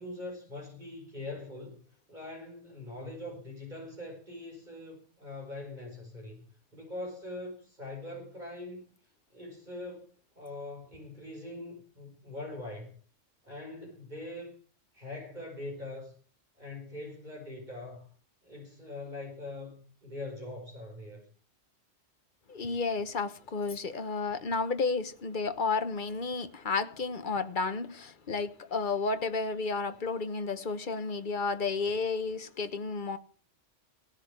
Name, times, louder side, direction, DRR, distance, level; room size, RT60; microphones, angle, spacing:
voice 1, 0.0-8.8 9.3-12.9 13.4-14.5 14.9-16.1 16.6-18.1 18.4-21.3, left 2 dB, 35° right, 5.5 m, -42 dB
voice 2, 22.5-33.2, left 4 dB, 45° left, 1.2 m, -32 dB
16.5 x 7.2 x 8.1 m
omnidirectional pair, 1.2 m